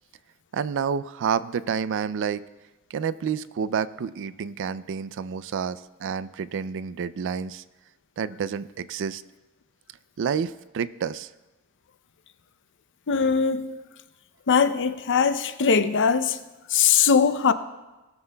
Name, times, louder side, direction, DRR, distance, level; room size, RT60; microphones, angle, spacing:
voice 1, 0.5-2.4 2.9-7.6 8.2-9.2 10.2-11.3 13.5-13.8, right 7 dB, 60° right, 0.4 m, -29 dB
voice 2, 13.1-13.8 14.5-16.4 16.7-17.5, left 6 dB, 55° left, 0.6 m, -21 dB
19.5 x 13.0 x 2.3 m
head